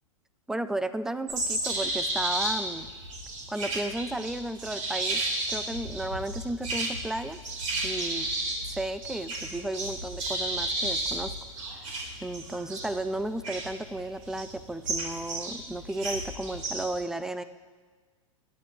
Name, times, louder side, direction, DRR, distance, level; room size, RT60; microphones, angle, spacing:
voice 1, 0.5-2.9 3.5-5.2 5.5-7.4 7.8-8.3 8.7-11.3 12.2-17.4, right 1 dB, 5° right, 13 dB, 0.4 m, -33 dB
sound 1, 1.3-16.9, right 2 dB, 70° right, 4.4 m, -32 dB
21.0 x 9.9 x 3.3 m, 1.5 s
hypercardioid pair, 115°, 17 cm